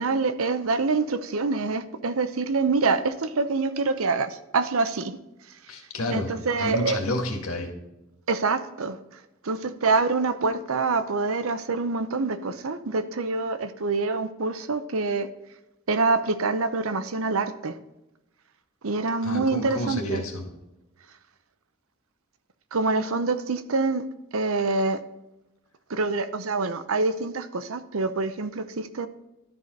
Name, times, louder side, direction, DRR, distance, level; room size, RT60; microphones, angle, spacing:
voice 1, 0.0-5.2 6.1-7.0 8.3-9.0 9.4-15.3 15.9-17.8 18.8-20.2 22.7-24.0 24.3-25.0 25.9-29.1, right 3 dB, 80° right, 11 dB, 0.7 m, -26 dB
voice 2, 5.7-7.7 19.2-20.5, left 1 dB, 80° left, 2 dB, 1.9 m, -30 dB
12.5 x 5.0 x 3.9 m, 0.96 s
head